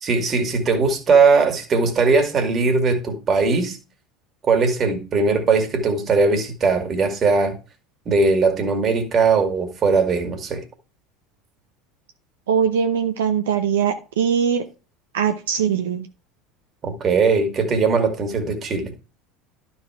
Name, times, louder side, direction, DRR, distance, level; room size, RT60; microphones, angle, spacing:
voice 1, 0.0-3.8 4.4-7.5 8.1-10.6 16.8-18.9, right 4 dB, 40° right, 2.1 m, -19 dB
voice 2, 12.5-14.6 15.1-16.1, right 7 dB, 80° right, 0.7 m, -21 dB
11.5 x 4.3 x 4.6 m
hypercardioid pair, 80°, 0 cm